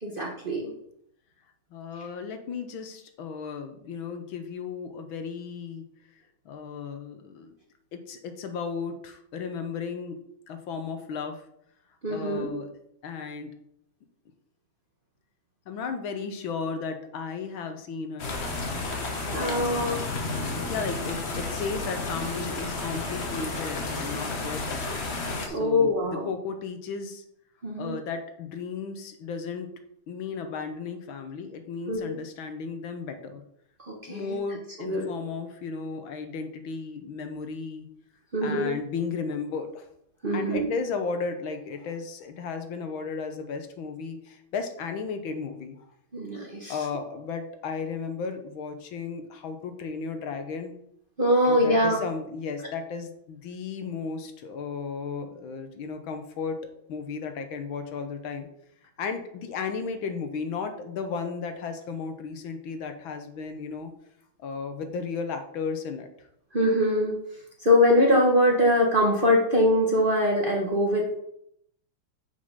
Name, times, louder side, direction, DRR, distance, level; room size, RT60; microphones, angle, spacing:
voice 1, 0.0-0.7 12.0-12.5 19.3-20.0 25.5-26.2 27.6-28.0 31.9-32.2 33.9-34.4 34.8-35.1 38.3-38.7 40.2-40.7 46.1-46.7 51.2-52.0 66.5-67.1 67.6-71.1, left 1 dB, 30° right, -2 dB, 1.1 m, -23 dB
voice 2, 1.7-5.9 6.5-7.6 7.9-10.2 10.5-11.4 12.1-12.7 13.0-13.5 15.7-18.3 19.4-20.1 20.6-24.8 25.5-25.9 26.2-27.2 27.8-29.7 30.1-33.4 34.1-37.9 38.4-39.9 40.3-45.8 46.7-50.8 51.4-56.6 56.9-58.5 59.0-63.9 64.4-66.1, left 5 dB, 75° left, 7 dB, 1.7 m, -34 dB
sound 1, 18.2-25.5, left 3 dB, 40° left, 1.1 m, -32 dB
6.5 x 5.7 x 5.4 m, 0.73 s
omnidirectional pair, 2.3 m